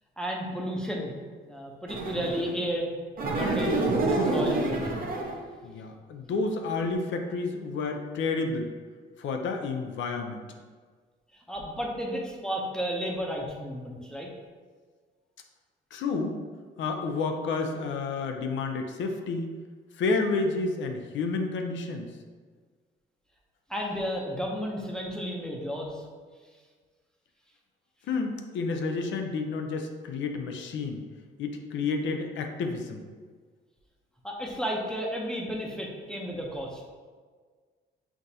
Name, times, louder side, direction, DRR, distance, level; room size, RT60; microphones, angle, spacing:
voice 1, 0.2-1.1 1.4-2.9 3.2-3.7 4.1-5.1 11.5-14.3 23.7-26.0 34.2-36.8, equal, 5° left, -2 dB, 0.7 m, -33 dB
sound 1, 1.9-2.6 3.2-5.4, right 2 dB, 45° right, 0.7 m, -27 dB
voice 2, 5.6-8.7 9.2-10.4 15.9-16.4 16.8-19.5 20.0-22.1 28.1-31.0 31.4-33.0, left 3 dB, 70° left, 4 dB, 0.5 m, -30 dB
5.8 x 2.5 x 2.7 m, 1.5 s
cardioid pair, 90°, 20 cm